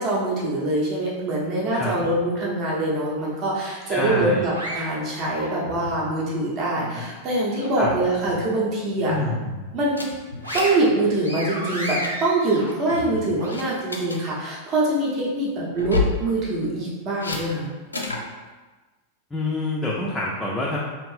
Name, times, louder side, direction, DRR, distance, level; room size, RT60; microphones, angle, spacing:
voice 1, 0.0-9.1 9.7-10.2 10.5-17.7, right 2 dB, 35° right, -5 dB, 0.8 m, -24 dB
voice 2, 3.9-4.5 7.8-7.9 9.1-9.3 19.3-20.8, left 2 dB, 10° left, -5 dB, 0.4 m, -26 dB
sound 1, 4.0-6.0 6.4-7.9 8.3-8.4 8.9-9.7 10.1-13.5, equal, 90° right, 0.6 m, -34 dB
sound 2, 9.9-10.9 11.1-11.3 11.7-12.1 12.7-13.0 13.5-14.2 15.7-16.2 17.2-17.4 17.9-18.3, left 4 dB, 80° left, 0.4 m, -28 dB
2.7 x 2.5 x 3.2 m, 1.3 s
figure-of-eight pair, 90°, 0 cm